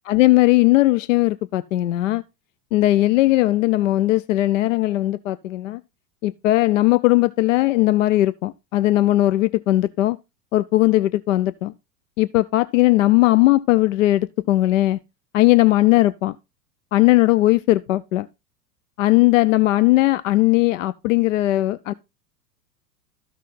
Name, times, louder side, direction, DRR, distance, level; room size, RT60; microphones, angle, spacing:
voice 1, 0.1-2.2 2.7-5.8 6.2-10.2 10.5-11.7 12.2-15.0 15.3-16.4 16.9-18.3 19.0-21.9, left 17 dB, 55° left, 0.5 m, -18 dB
13.0 x 6.2 x 3.9 m
figure-of-eight pair, 90°, 48 cm